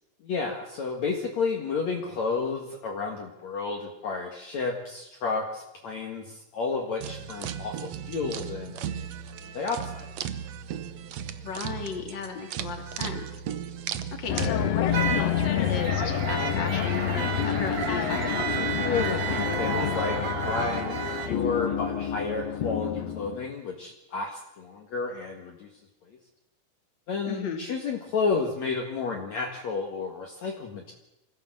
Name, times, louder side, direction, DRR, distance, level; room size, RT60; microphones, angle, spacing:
voice 1, 0.2-9.1 9.4-10.1 18.7-20.2 20.5-25.7 26.0-26.2 27.1-30.9, left 4 dB, 50° left, 1 dB, 2.8 m, -31 dB
sound 1, 7.0-14.5, right 9 dB, 80° right, 1.5 m, -36 dB
voice 2, 11.4-13.3 14.2-18.5 27.3-27.6, left 6 dB, 30° left, 3 dB, 2.9 m, -35 dB
sound 2, 14.3-23.5, left 9 dB, 80° left, 1.5 m, -28 dB
sound 3, 14.9-21.3, right 5 dB, 50° right, 3.3 m, -31 dB
24.5 x 15.5 x 7.8 m, 0.91 s
omnidirectional pair, 4.5 m